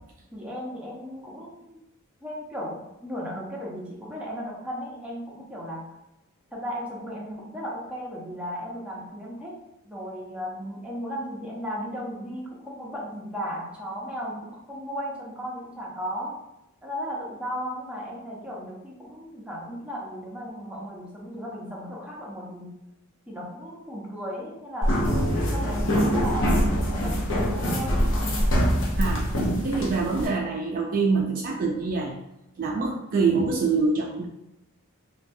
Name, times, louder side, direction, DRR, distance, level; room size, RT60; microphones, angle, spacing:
voice 1, 0.3-1.8 2.2-5.9 6.5-9.6 9.8-16.4 16.8-22.8 23.3-28.1, equal, 5° right, -4 dB, 0.7 m, -36 dB
sound 1, 24.8-30.3, equal, 60° left, 0.7 m, -24 dB
voice 2, 29.6-32.1 32.6-34.3, right 4 dB, 40° right, 0 dB, 0.3 m, -25 dB
3.2 x 2.3 x 2.6 m, 0.92 s
head